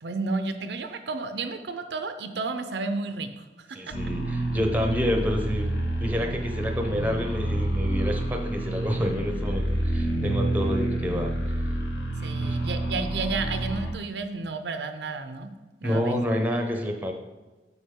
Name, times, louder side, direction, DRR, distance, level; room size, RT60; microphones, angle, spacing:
voice 1, 0.0-3.8 12.2-15.5 15.8-16.2, right 3 dB, 80° right, 8 dB, 0.6 m, -32 dB
voice 2, 3.7-5.7 6.0-11.3 12.4-12.6 15.8-17.1, equal, 10° right, 3 dB, 0.7 m, -28 dB
sound 1, 3.9-13.9, right 1 dB, 85° left, 1.0 m, -28 dB
7.1 x 6.1 x 3.7 m, 1.2 s
head